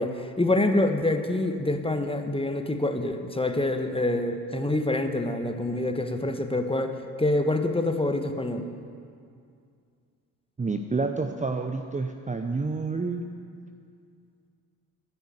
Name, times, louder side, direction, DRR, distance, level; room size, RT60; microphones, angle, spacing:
voice 1, 0.0-8.7, left 2 dB, 10° left, 6 dB, 1.4 m, -26 dB
voice 2, 10.6-13.2, right 3 dB, 15° right, 5 dB, 0.8 m, -29 dB
14.5 x 10.5 x 8.2 m, 2.3 s
figure-of-eight pair, 45°, 48 cm